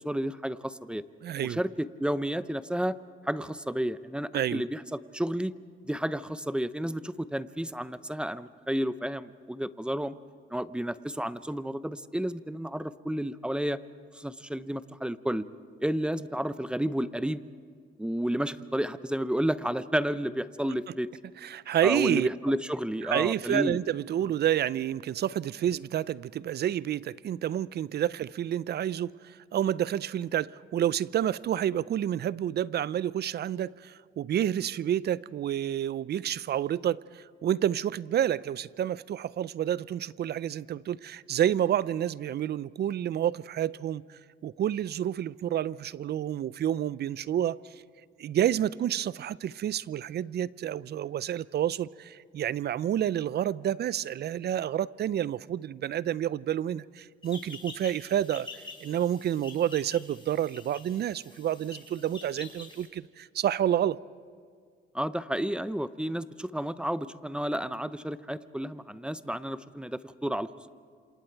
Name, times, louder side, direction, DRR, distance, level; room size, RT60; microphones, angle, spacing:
voice 1, 0.0-1.0 1.4-3.0 3.2-5.5 5.9-10.1 10.5-13.8 14.1-15.5 15.8-17.4 18.0-21.1 21.8-23.8 64.9-70.7, equal, 5° right, 0.7 m, -31 dB
voice 2, 1.2-1.6 4.3-4.6 20.9-21.0 21.4-22.3 23.0-47.8 48.2-58.5 58.8-64.0, right 10 dB, 55° right, 0.5 m, -29 dB
sound 1, 57.2-62.9, left 3 dB, 25° left, 4.8 m, -47 dB
27.5 x 27.5 x 4.6 m
cardioid pair, 90°, 20 cm